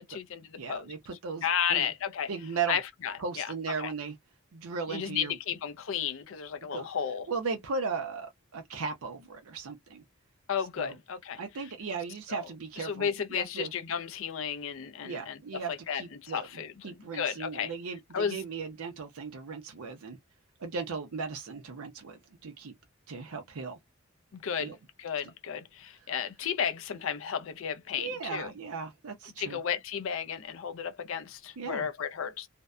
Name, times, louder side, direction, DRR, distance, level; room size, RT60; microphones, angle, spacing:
voice 1, 0.0-0.9 1.4-2.3 2.7-3.5 3.8-3.9 4.9-7.3 10.5-11.4 12.3-12.5 12.8-17.7 18.1-18.4 24.3-28.5 29.4-32.5, left 8 dB, 65° left, 0.4 m, -33 dB
voice 2, 0.6-1.9 2.3-2.8 3.2-4.1 4.5-5.4 6.7-6.9 7.3-10.0 10.8-10.9 11.4-13.7 15.0-16.5 16.8-20.2 20.6-22.7 23.1-23.8 24.6-24.7 28.0-29.6 31.6-31.9, right 5 dB, 90° right, 0.6 m, -37 dB
2.6 x 2.1 x 2.2 m
head